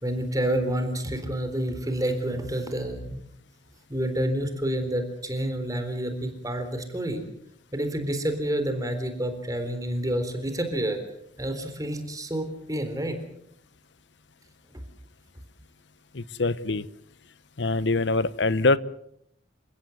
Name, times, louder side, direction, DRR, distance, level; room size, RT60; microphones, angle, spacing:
voice 1, 0.0-3.2 3.9-7.2 7.7-11.0 11.4-13.2, right 1 dB, 20° right, 7 dB, 3.8 m, -28 dB
voice 2, 16.1-16.9 17.6-18.8, left 3 dB, 70° left, 17 dB, 1.0 m, -24 dB
29.5 x 16.0 x 7.9 m, 0.73 s
head